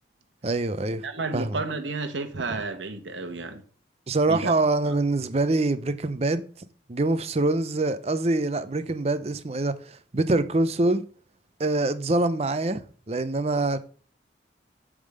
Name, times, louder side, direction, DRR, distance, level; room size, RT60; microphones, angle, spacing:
voice 1, 0.4-1.1 1.3-1.6 2.5-2.6 4.1-6.4 6.9-11.0 11.6-13.8, right 2 dB, 35° right, 0.5 m, -25 dB
voice 2, 1.0-3.6 4.3-4.5, right 3 dB, 80° right, 1.0 m, -31 dB
8.3 x 3.7 x 6.5 m
head